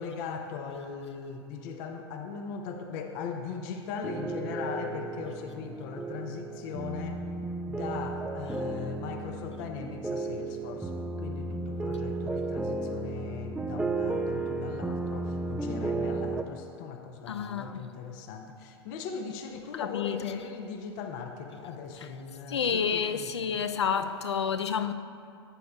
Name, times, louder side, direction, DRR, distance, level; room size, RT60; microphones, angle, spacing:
voice 1, 0.0-7.2 7.7-10.9 11.2-23.6 23.9-24.1, left 6 dB, 50° left, 0.7 m, -39 dB
sound 1, 4.0-16.4, right 3 dB, 5° right, 0.4 m, -34 dB
voice 2, 17.3-17.9 19.8-20.3 22.5-24.9, left 7 dB, 80° left, 0.5 m, -29 dB
12.5 x 8.4 x 2.4 m
figure-of-eight pair, 95°, 14 cm